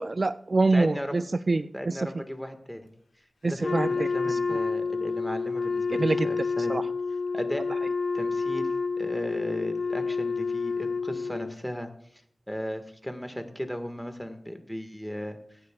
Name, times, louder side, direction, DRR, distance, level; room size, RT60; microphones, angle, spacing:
voice 1, 0.0-1.9 3.4-4.1 6.0-6.3 6.7-6.8, right 3 dB, 50° right, 13 dB, 0.4 m, -25 dB
voice 2, 0.7-1.2 1.7-2.9 3.4-6.8 7.1-7.7 8.1-12.2 12.5-15.6, equal, 5° left, 7 dB, 1.6 m, -36 dB
Wind instrument woodwind instrument, 3.6-11.6, left 4 dB, 75° left, 1.1 m, -29 dB
21.5 x 9.5 x 2.4 m, 0.66 s
wide cardioid pair, 65°, 0 cm